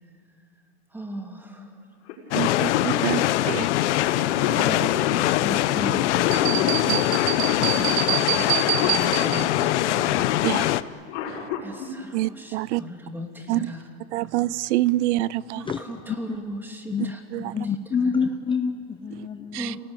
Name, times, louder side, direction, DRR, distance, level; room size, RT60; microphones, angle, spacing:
voice 1, 0.9-1.8 3.1-3.6 4.4-7.1 7.4-10.4 11.6-13.9 15.5-17.7 18.0-18.3 19.5-19.8, equal, 5° right, 3 dB, 2.8 m, -37 dB
Cough, 2.1-2.2 2.4-9.7 10.8-11.9 13.5-13.6 14.7-14.9 15.4-15.5 15.9-16.4, left 8 dB, 70° left, 6.0 m, -33 dB
sound 1, 2.3-10.8, left 14 dB, 90° left, 0.9 m, -22 dB
voice 2, 2.3-3.7 6.9-7.0 10.4-10.7 11.3-11.4 12.1-12.8 13.5-13.7 14.1-15.6 17.3-17.6 19.5-19.7, right 17 dB, 85° right, 22 dB, 0.6 m, -26 dB
sound 2, 6.3-9.7, right 11 dB, 65° right, 2.1 m, -27 dB
voice 3, 17.5-19.8, left 5 dB, 15° left, 9 dB, 0.6 m, -27 dB
29.5 x 19.0 x 9.1 m, 2.2 s
supercardioid pair, 145°, 34 cm